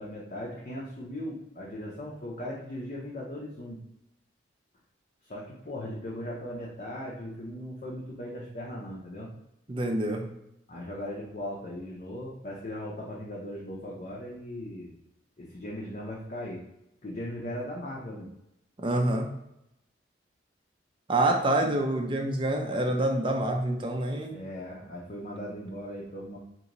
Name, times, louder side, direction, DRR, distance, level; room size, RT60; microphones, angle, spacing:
voice 1, 0.0-3.8 5.3-9.3 10.7-14.9 15.4-16.6 17.0-18.3 24.3-26.4, left 1 dB, 40° left, -4 dB, 0.7 m, -38 dB
voice 2, 9.7-10.2 18.8-19.3 21.1-24.4, right 1 dB, 25° right, 2 dB, 0.5 m, -26 dB
3.0 x 2.7 x 3.9 m, 0.83 s
head